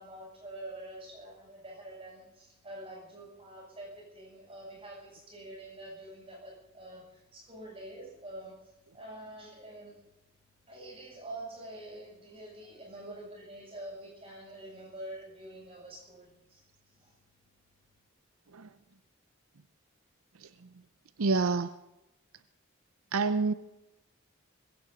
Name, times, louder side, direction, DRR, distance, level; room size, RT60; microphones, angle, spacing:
voice 1, 0.0-8.5 8.9-10.1 10.7-17.1, right 1 dB, 25° right, -3 dB, 7.9 m, -46 dB
voice 2, 21.2-21.7 23.1-23.5, right 4 dB, 85° right, 13 dB, 0.6 m, -28 dB
20.5 x 16.5 x 4.1 m, 0.94 s
head